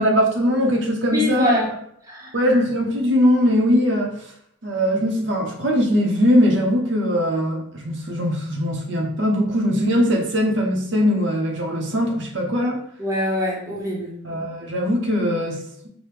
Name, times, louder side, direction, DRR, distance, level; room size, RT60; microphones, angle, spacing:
voice 1, 0.0-1.6 2.3-4.3 4.6-12.8 14.2-15.9, equal, 60° right, 0 dB, 0.6 m, -20 dB
voice 2, 1.1-1.8 2.0-2.3 13.0-14.2, left 1 dB, 15° right, -4 dB, 0.9 m, -24 dB
4.9 x 2.1 x 3.0 m, 0.69 s
head